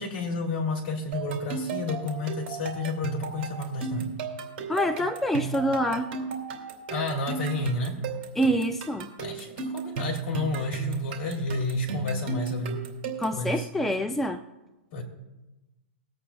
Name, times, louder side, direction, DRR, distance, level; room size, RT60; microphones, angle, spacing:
voice 1, 0.0-4.1 6.9-8.0 9.2-12.8 13.3-13.7 14.9-15.0, left 2 dB, 50° left, 1 dB, 3.1 m, -31 dB
sound 1, 1.1-13.4, right 5 dB, 45° right, 2.5 m, -34 dB
voice 2, 4.7-6.1 8.4-9.1 13.2-14.4, equal, 5° left, 6 dB, 0.4 m, -26 dB
21.5 x 8.4 x 2.3 m, 1.0 s
hypercardioid pair, 150°, 7 cm